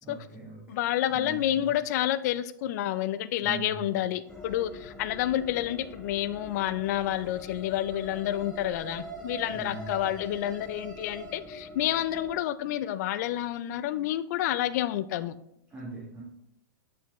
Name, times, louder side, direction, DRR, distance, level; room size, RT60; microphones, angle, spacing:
voice 1, 0.0-0.8 1.1-1.7 3.4-4.0 9.5-10.1 15.7-16.2, right 3 dB, 15° right, 1.6 m, -41 dB
voice 2, 0.7-15.4, left 12 dB, 55° left, 0.4 m, -29 dB
sound 1, 3.9-4.6 6.9-11.4, right 2 dB, 65° right, 2.2 m, -44 dB
sound 2, 4.3-12.4, left 2 dB, 10° left, 0.7 m, -45 dB
9.0 x 4.4 x 3.0 m
hypercardioid pair, 135°, 11 cm